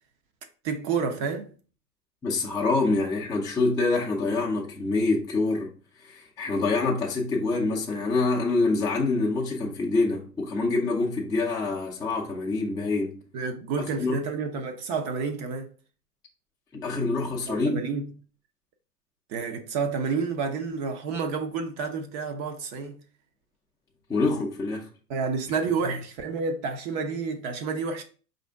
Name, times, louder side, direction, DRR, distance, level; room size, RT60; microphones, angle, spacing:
voice 1, 0.6-1.5 13.3-15.7 17.5-18.1 19.3-23.0 25.1-28.0, right 5 dB, 35° right, 0.6 m, -29 dB
voice 2, 2.2-13.2 14.0-14.2 16.7-17.9 24.1-24.9 25.8-25.9, left 3 dB, 10° left, 0.5 m, -26 dB
4.8 x 2.6 x 3.3 m
hypercardioid pair, 100°, 48 cm